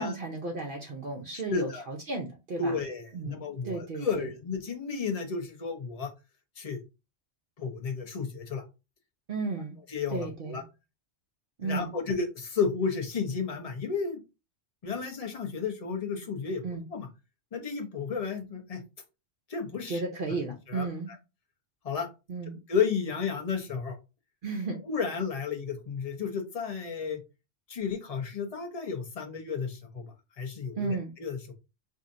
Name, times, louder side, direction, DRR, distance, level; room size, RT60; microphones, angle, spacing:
voice 1, 0.0-2.7 3.1-4.3 9.3-9.8 10.1-10.6 11.6-11.9 16.6-16.8 19.9-21.1 22.3-22.6 24.4-24.8 30.7-31.1, right 3 dB, 55° right, 2 dB, 0.7 m, -34 dB
voice 2, 1.5-1.9 2.6-6.1 6.6-6.8 7.6-8.6 9.9-10.6 11.6-14.2 14.8-16.6 16.9-17.1 17.5-18.8 19.5-20.4 20.7-20.9 21.8-22.1 22.7-24.0 24.9-27.2 27.7-31.5, left 5 dB, 40° left, 3 dB, 0.7 m, -32 dB
4.1 x 2.7 x 2.5 m, 0.28 s
omnidirectional pair, 1.2 m